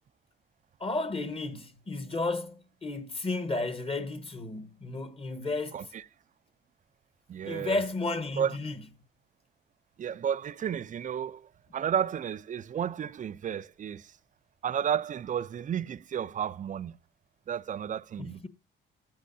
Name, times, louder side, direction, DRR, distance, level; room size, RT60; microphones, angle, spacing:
voice 1, 0.8-5.9 7.4-8.8 18.2-18.5, left 2 dB, 30° left, 1.2 m, -33 dB
voice 2, 7.3-7.8 8.4-8.5 10.0-14.0 14.6-17.0 17.5-18.5, right 8 dB, 40° right, 0.4 m, -32 dB
13.5 x 8.2 x 2.7 m
cardioid pair, 90°, 20 cm